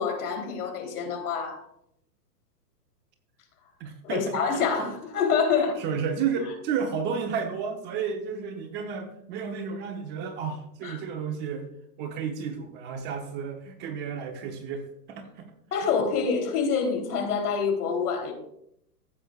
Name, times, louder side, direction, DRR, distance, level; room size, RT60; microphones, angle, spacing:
voice 1, 0.0-1.6 4.0-5.8 10.8-11.0 15.7-18.3, left 6 dB, 65° left, 3 dB, 3.4 m, -26 dB
voice 2, 3.8-4.9 5.5-11.6 12.0-15.5, right 6 dB, 20° right, 5 dB, 0.8 m, -32 dB
15.0 x 8.1 x 2.4 m, 0.74 s
hypercardioid pair, 130°, 49 cm